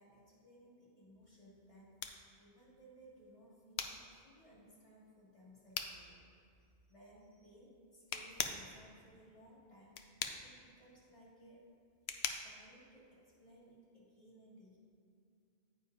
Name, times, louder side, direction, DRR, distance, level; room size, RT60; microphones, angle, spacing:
voice 1, 0.0-2.0 2.4-6.2 6.9-10.0 10.4-11.7 12.4-14.8, right 1 dB, 30° left, -7 dB, 2.0 m, -61 dB
sound 1, 1.2-13.8, left 7 dB, 75° left, 0.8 m, -45 dB
9.4 x 8.5 x 2.5 m, 2.4 s
omnidirectional pair, 1.1 m